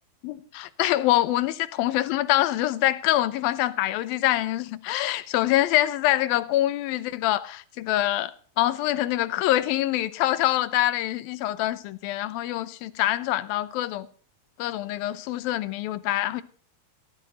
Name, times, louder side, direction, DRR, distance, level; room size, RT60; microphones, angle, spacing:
voice 1, 0.2-14.1 14.6-16.4, left 14 dB, 75° left, 2.5 m, -25 dB
17.5 x 13.5 x 4.1 m
omnidirectional pair, 4.7 m